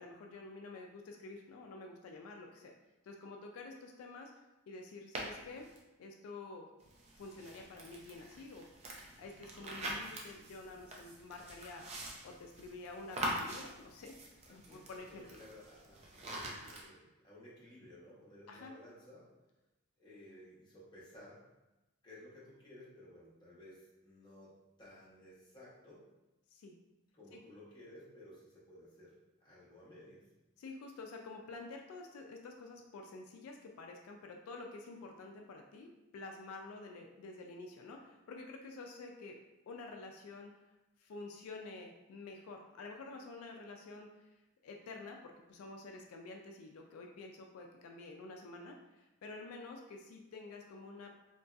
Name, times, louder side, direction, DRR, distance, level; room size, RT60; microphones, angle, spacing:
voice 1, 0.0-2.7 3.0-4.3 4.7-5.7 6.0-6.7 7.1-8.7 9.2-12.0 12.2-14.2 14.5-15.2 18.5-18.7 26.5-26.8 30.6-39.4 39.7-40.5 41.0-44.1 44.6-51.1, left 3 dB, 85° left, 1 dB, 0.3 m, -49 dB
sound 1, 5.1-5.8 6.8-16.8, right 1 dB, 30° right, 0.4 m, -44 dB
voice 2, 14.5-19.3 20.0-21.4 22.0-26.1 27.1-29.1 29.4-30.3, left 1 dB, 20° left, -8 dB, 0.9 m, -56 dB
2.9 x 2.6 x 2.3 m, 1.0 s
head